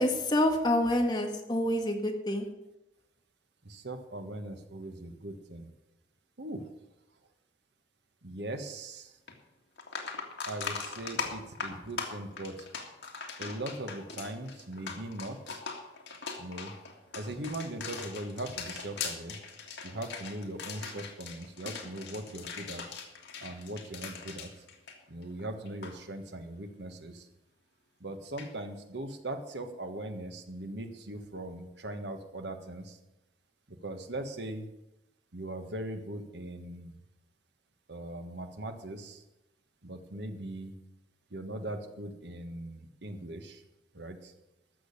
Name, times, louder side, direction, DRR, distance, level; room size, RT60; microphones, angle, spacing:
voice 1, 0.0-2.5, left 1 dB, 25° left, 2 dB, 1.8 m, -27 dB
voice 2, 3.6-5.7 6.4-6.6 8.2-9.2 10.4-12.7 13.4-15.6 16.4-16.7 17.1-19.4 19.8-22.8 23.4-24.5 25.1-27.3 28.0-33.0 33.7-34.7 35.3-36.9 37.9-39.2 39.8-40.7 41.3-43.6 43.9-44.3, right 1 dB, 75° right, 6 dB, 1.5 m, -40 dB
sound 1, 9.3-9.4 9.8-25.4 25.7-25.9 28.4-28.5, left 5 dB, 80° left, 2.0 m, -40 dB
14.0 x 6.4 x 8.5 m, 0.93 s
head